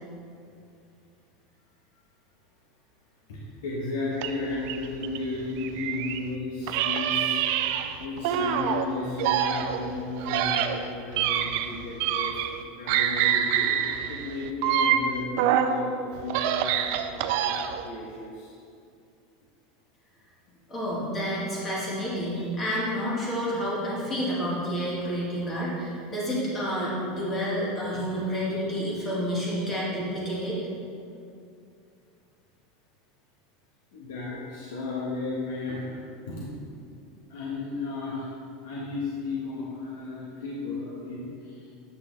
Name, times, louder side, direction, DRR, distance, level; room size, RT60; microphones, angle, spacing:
voice 1, 3.3-7.4 8.0-12.4 12.8-17.5 17.8-18.5 33.9-36.0 36.3-36.5 37.3-38.3 38.6-41.7, left 3 dB, 75° left, -5 dB, 1.3 m, -34 dB
sound 1, 4.2-6.3 6.7-8.9 9.2-12.6 12.9-15.8 16.2-17.9, right 9 dB, 50° right, 0.4 m, -26 dB
voice 2, 20.7-30.6, equal, 15° left, -6 dB, 1.6 m, -29 dB
8.6 x 5.9 x 3.4 m, 2.5 s
supercardioid pair, 175°, 0 cm